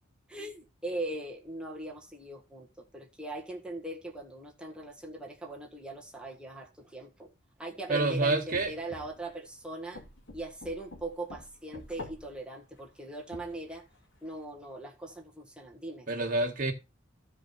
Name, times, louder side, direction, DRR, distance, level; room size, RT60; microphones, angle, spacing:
voice 1, 0.3-7.3 7.6-10.0 10.3-13.8 14.2-16.1, right 2 dB, 5° right, 1.5 m, -40 dB
voice 2, 7.9-8.7 16.1-16.7, right 2 dB, 45° right, 1.8 m, -27 dB
sound 1, 8.5-9.5 10.0-12.4 12.8-14.3, left 2 dB, 65° left, 2.7 m, -47 dB
14.5 x 5.0 x 4.1 m
head